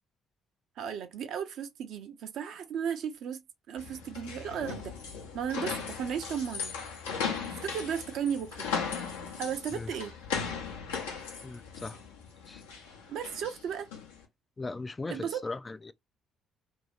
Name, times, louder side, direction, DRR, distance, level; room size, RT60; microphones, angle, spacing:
voice 1, 0.8-3.4 3.7-5.0 5.3-6.7 7.6-8.7 9.4-10.1 13.1-13.9 15.1-15.4, right 8 dB, 60° right, 0.6 m, -35 dB
sound 1, 3.8-14.2, left 6 dB, 80° left, 0.8 m, -37 dB
voice 2, 11.4-12.0 12.5-12.6 14.6-15.9, left 3 dB, 25° left, 0.3 m, -38 dB
2.7 x 2.7 x 3.1 m
hypercardioid pair, 45°, 0 cm